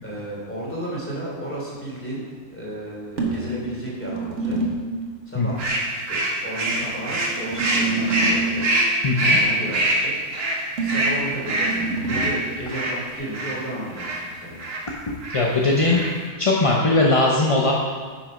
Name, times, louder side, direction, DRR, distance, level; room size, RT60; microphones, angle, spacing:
voice 1, 0.0-2.2 2.5-4.7 5.3-5.6 5.9-8.6 9.1-10.1 10.8-14.6, right 1 dB, 10° left, -6 dB, 3.0 m, -33 dB
sound 1, 3.2-5.0 6.7-8.6 10.8-12.3, right 3 dB, 55° right, 1.6 m, -27 dB
sound 2, 5.6-13.6 14.0-14.2 14.6-14.9 15.2-15.5 15.8-16.3, right 1 dB, 85° right, 1.8 m, -24 dB
voice 2, 9.0-9.4 15.1-16.0 16.4-17.7, left 2 dB, 30° left, -3 dB, 0.6 m, -19 dB
9.7 x 6.2 x 5.2 m, 1.5 s
omnidirectional pair, 1.6 m